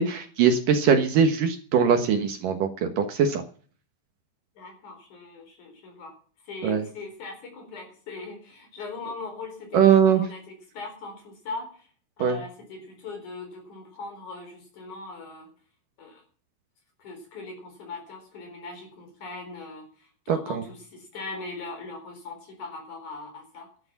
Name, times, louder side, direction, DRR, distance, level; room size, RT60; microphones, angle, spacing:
voice 1, 0.0-3.4 6.6-6.8 9.7-10.2 12.2-12.4 20.3-20.6, right 7 dB, 70° right, 6 dB, 2.1 m, -21 dB
voice 2, 4.5-6.2 6.4-11.9 12.2-15.5 16.0-16.2 17.0-23.7, left 3 dB, 40° left, 5 dB, 5.1 m, -40 dB
12.0 x 11.5 x 7.1 m, 0.43 s
omnidirectional pair, 5.6 m